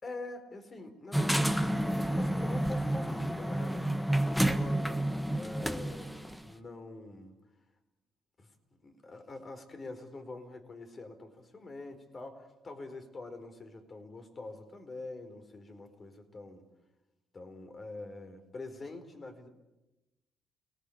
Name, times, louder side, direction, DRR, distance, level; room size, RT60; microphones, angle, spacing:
voice 1, 0.0-5.1 5.3-7.4 8.4-8.5 8.8-16.6 17.3-19.5, left 2 dB, 35° left, 8 dB, 4.6 m, -45 dB
sound 1, 1.1-6.4, right 1 dB, 5° left, 1.5 m, -30 dB
29.5 x 20.0 x 8.7 m, 1.0 s
cardioid pair, 90°, 0 cm